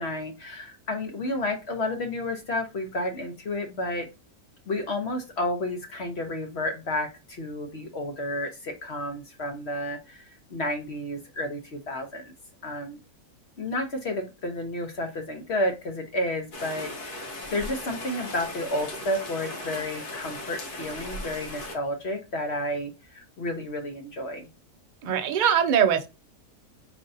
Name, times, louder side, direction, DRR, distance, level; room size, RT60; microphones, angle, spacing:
voice 1, 0.0-4.1 4.7-12.3 12.6-13.0 13.6-24.5, left 1 dB, 50° left, 0.9 m, -31 dB
Rain, 16.5-21.8, left 1 dB, 85° left, 1.4 m, -37 dB
voice 2, 25.0-26.1, right 8 dB, 60° right, 0.5 m, -22 dB
5.1 x 3.4 x 2.6 m
omnidirectional pair, 1.6 m